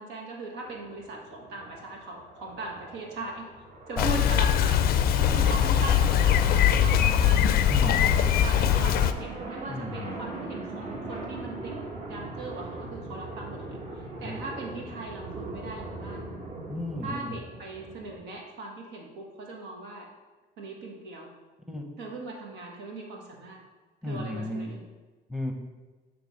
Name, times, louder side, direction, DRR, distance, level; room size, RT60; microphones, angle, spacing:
voice 1, 0.0-3.5 3.9-11.8 12.0-16.2 17.0-20.1 20.6-21.3 22.0-23.6 24.0-24.8, right 3 dB, 85° right, 0 dB, 1.4 m, -39 dB
sound 1, 0.6-18.2, right 2 dB, 45° right, 1.3 m, -40 dB
Bicycle, 4.0-9.1, left 9 dB, 65° left, 0.4 m, -22 dB
voice 2, 7.7-8.2 9.7-10.2 14.2-14.4 16.7-17.3 21.7-21.8 24.0-24.7 25.3-25.5, left 1 dB, ahead, 2 dB, 0.8 m, -34 dB
6.8 x 3.3 x 5.5 m, 1.3 s
cardioid pair, 110°, 17 cm